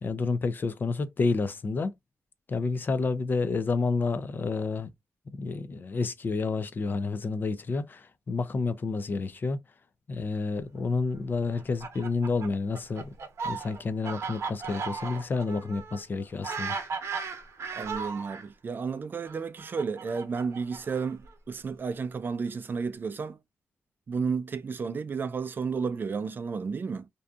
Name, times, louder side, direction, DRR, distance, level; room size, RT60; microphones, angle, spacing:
voice 1, 0.0-1.9 2.5-4.9 5.3-9.6 10.1-13.1 13.4-16.7, left 4 dB, 40° left, 0.4 m, -29 dB
Fowl, 11.5-18.5 19.3-21.3, right 5 dB, 65° right, 0.8 m, -36 dB
voice 2, 17.8-21.2 21.5-23.4 24.1-27.1, right 5 dB, 40° right, 0.4 m, -32 dB
2.6 x 2.4 x 2.2 m
wide cardioid pair, 115°, 5 cm